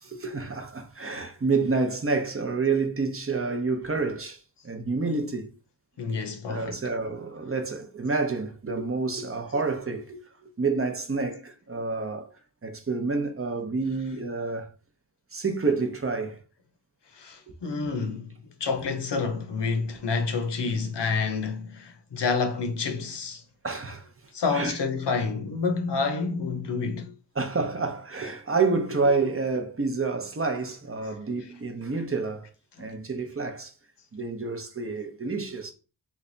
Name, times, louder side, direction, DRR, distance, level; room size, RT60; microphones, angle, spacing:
voice 1, 0.0-5.5 6.5-12.3 12.6-14.7 15.3-16.4 23.6-24.1 24.5-24.8 27.4-32.5 32.8-33.7 34.1-35.7, right 4 dB, 30° right, 0.7 m, -28 dB
voice 2, 6.0-6.8 17.1-23.4 24.3-27.1 32.8-32.9, left 4 dB, 75° left, 0.7 m, -29 dB
3.1 x 2.3 x 3.8 m
wide cardioid pair, 55°, 43 cm